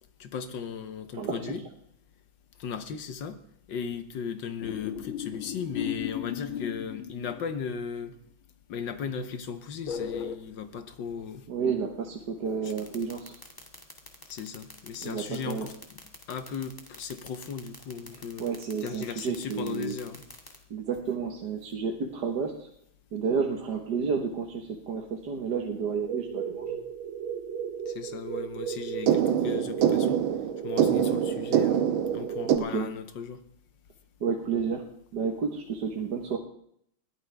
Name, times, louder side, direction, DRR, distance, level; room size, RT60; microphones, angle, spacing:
voice 1, 0.2-1.6 2.6-3.4 3.7-8.1 8.7-11.5 12.6-12.7 14.3-16.0 16.3-18.5 18.8-20.2 27.9-30.2 30.6-31.9 32.1-33.4, left 6 dB, 65° left, 1.7 m, -37 dB
sound 1, 4.6-7.8 9.9-10.4, left 9 dB, 90° left, 1.9 m, -35 dB
voice 2, 11.5-13.3 15.0-15.7 18.4-20.0 20.7-22.7 23.1-26.8 32.4-32.9 34.2-34.8 35.1-36.4, right 5 dB, 55° right, 1.9 m, -31 dB
sound 2, 12.7-20.6, left 1 dB, 10° left, 1.9 m, -46 dB
sound 3, 26.1-32.6, right 9 dB, 80° right, 1.8 m, -27 dB
21.0 x 14.5 x 3.5 m
omnidirectional pair, 2.2 m